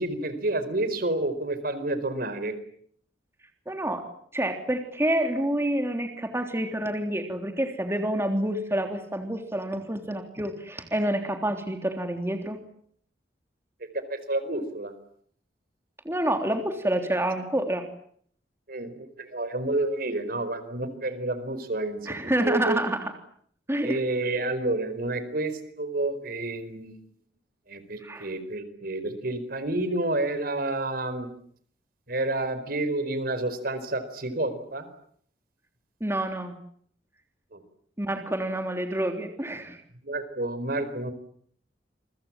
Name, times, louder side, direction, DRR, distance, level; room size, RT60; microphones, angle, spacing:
voice 1, 0.0-2.6 13.8-14.9 18.7-22.8 23.8-27.0 27.7-31.3 32.1-34.9 37.5-37.6 40.0-41.1, right 2 dB, 55° right, 12 dB, 4.6 m, -29 dB
voice 2, 3.7-4.0 4.3-12.6 16.1-17.8 22.1-23.1 23.7-24.0 28.0-28.3 36.0-36.5 38.0-39.8, right 1 dB, 15° right, 5 dB, 3.4 m, -28 dB
28.5 x 24.5 x 7.5 m, 0.62 s
head